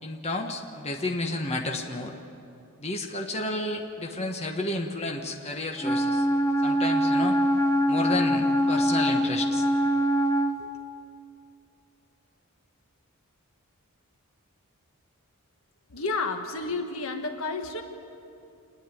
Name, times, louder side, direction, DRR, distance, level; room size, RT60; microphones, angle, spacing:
voice 1, 0.0-2.1 2.8-6.3 6.6-7.4 7.9-9.7 10.6-10.7, left 2 dB, 30° left, 1 dB, 1.4 m, -31 dB
Wind instrument woodwind instrument, 5.8-10.6, equal, 15° left, 0.8 m, -23 dB
voice 2, 15.9-17.8, left 3 dB, 65° left, 4 dB, 1.5 m, -31 dB
27.5 x 10.0 x 9.8 m, 2.7 s
head